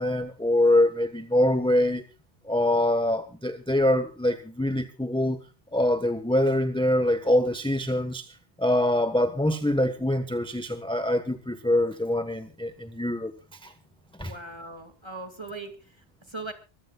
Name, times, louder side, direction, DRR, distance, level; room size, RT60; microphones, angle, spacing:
voice 1, 0.0-2.0 2.4-5.4 5.7-8.3 8.6-13.3 13.6-13.7 14.2-14.3, left 1 dB, 5° left, 8 dB, 1.2 m, -24 dB
voice 2, 14.2-16.5, right 2 dB, 25° right, 7 dB, 2.4 m, -40 dB
24.5 x 15.5 x 2.4 m, 0.32 s
omnidirectional pair, 1.2 m